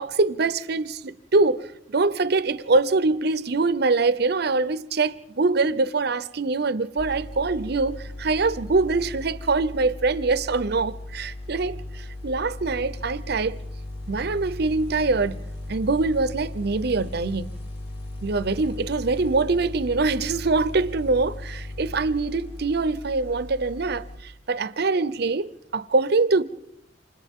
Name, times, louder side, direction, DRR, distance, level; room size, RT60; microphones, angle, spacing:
voice 1, 0.0-13.6 14.1-15.4 15.7-17.6 18.2-26.4, right 3 dB, 55° right, 0.7 m, -24 dB
sound 1, 7.0-24.2, left 1 dB, 60° left, 2.7 m, -37 dB
30.0 x 26.0 x 3.7 m
head